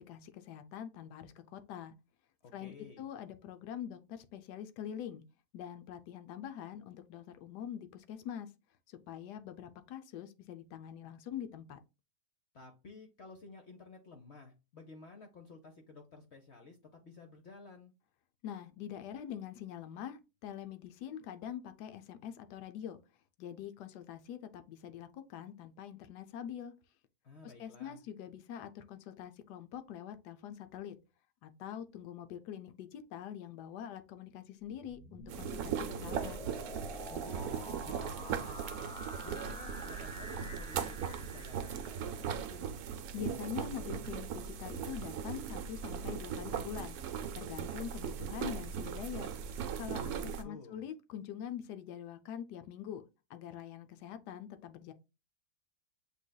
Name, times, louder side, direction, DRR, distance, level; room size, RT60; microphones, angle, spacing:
voice 1, 0.0-1.9 2.5-5.2 5.5-8.5 9.1-11.8 18.4-23.0 23.4-26.7 27.4-30.9 31.4-36.4 43.1-47.0 47.3-49.3 49.8-53.0 53.3-54.9, left 9 dB, 85° left, 1.2 m, -44 dB
voice 2, 2.4-3.0 12.5-17.9 27.2-28.0 37.1-38.9 39.2-42.7 50.0-50.8, left 3 dB, 55° left, 0.9 m, -53 dB
sound 1, 34.7-42.6, equal, 5° left, 0.5 m, -47 dB
sound 2, 35.3-50.4, right 7 dB, 70° right, 1.1 m, -39 dB
7.3 x 3.3 x 2.2 m
omnidirectional pair, 1.7 m